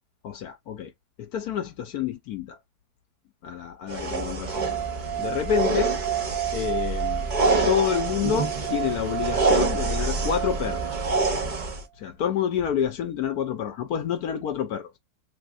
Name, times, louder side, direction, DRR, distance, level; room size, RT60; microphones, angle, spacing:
voice 1, 0.2-0.9 1.2-2.6 3.4-4.7 5.2-6.0 6.5-7.3 7.6-11.0 12.0-14.9, left 9 dB, 70° left, 1.0 m, -28 dB
sound 1, 3.9-11.8, right 3 dB, 40° right, 0.7 m, -27 dB
sound 2, 4.5-11.6, right 12 dB, 80° right, 1.3 m, -32 dB
3.4 x 3.2 x 2.4 m
omnidirectional pair, 1.9 m